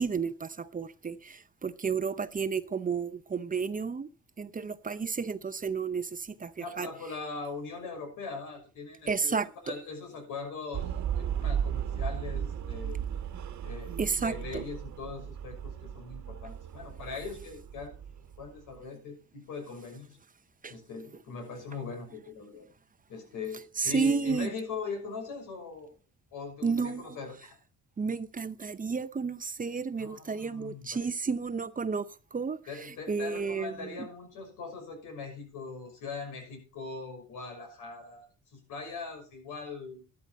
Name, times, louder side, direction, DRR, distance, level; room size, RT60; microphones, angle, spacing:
voice 1, 0.0-4.1 4.4-6.9 9.1-9.7 14.0-14.6 20.6-20.7 23.8-24.5 26.6-27.2 28.0-34.1, right 5 dB, 25° right, 0.7 m, -32 dB
voice 2, 6.6-9.3 9.6-13.0 13.6-17.9 18.4-20.2 20.7-22.7 23.1-25.9 26.3-27.6 29.9-31.1 32.7-38.3 38.5-40.0, left 4 dB, 85° left, 6.0 m, -41 dB
sound 1, 10.7-18.8, right 9 dB, 70° right, 1.5 m, -35 dB
12.5 x 11.5 x 4.2 m
cardioid pair, 90°, 30 cm